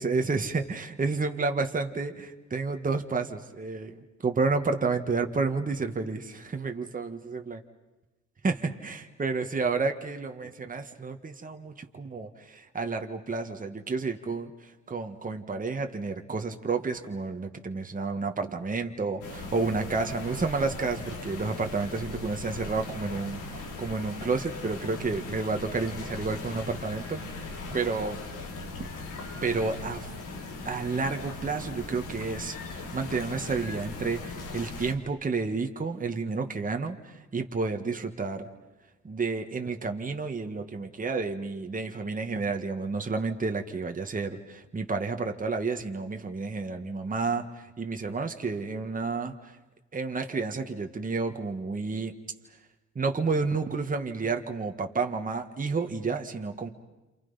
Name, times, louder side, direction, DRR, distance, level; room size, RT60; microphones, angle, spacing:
voice 1, 0.0-7.6 8.4-28.2 29.4-30.1 30.7-38.5 39.0-49.5 49.9-52.1 53.0-56.7, right 4 dB, 25° right, 5 dB, 1.7 m, -30 dB
sound 1, 19.2-34.9, left 3 dB, 85° left, 3.6 m, -39 dB
29.0 x 28.0 x 5.7 m, 1.1 s
cardioid pair, 90°, 30 cm